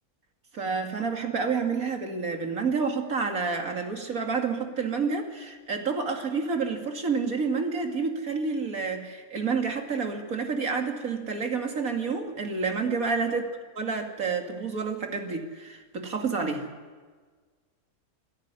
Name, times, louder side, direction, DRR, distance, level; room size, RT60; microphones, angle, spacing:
voice 1, 0.5-13.4 13.8-16.7, right 5 dB, 70° right, 4 dB, 2.7 m, -29 dB
26.0 x 14.0 x 9.8 m, 1.5 s
omnidirectional pair, 1.5 m